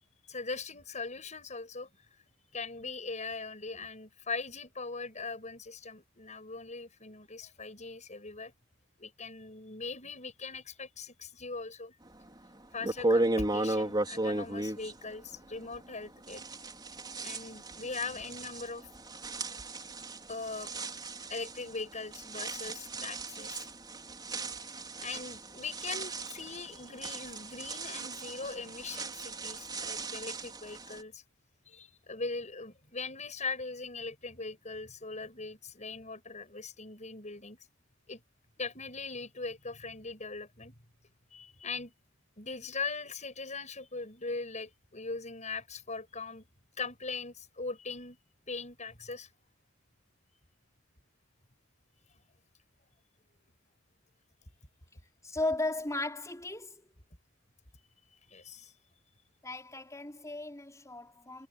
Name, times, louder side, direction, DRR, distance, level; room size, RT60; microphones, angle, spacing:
voice 1, 0.3-1.9 2.5-8.5 9.0-11.9 12.7-16.4 17.1-18.9 20.3-20.7 21.3-23.7 25.0-31.2 31.7-37.6 38.1-38.2 38.6-40.7 41.3-41.9 42.4-46.5 46.8-48.2 48.5-49.3 58.3-58.7, left 4 dB, 35° left, 7.5 m, -40 dB
sound 1, 12.3-12.4 12.8-15.9 16.3-31.0, right 2 dB, 20° right, 5.1 m, -36 dB
voice 2, 55.2-56.9 59.4-61.5, left 2 dB, 15° left, 5.1 m, -36 dB
head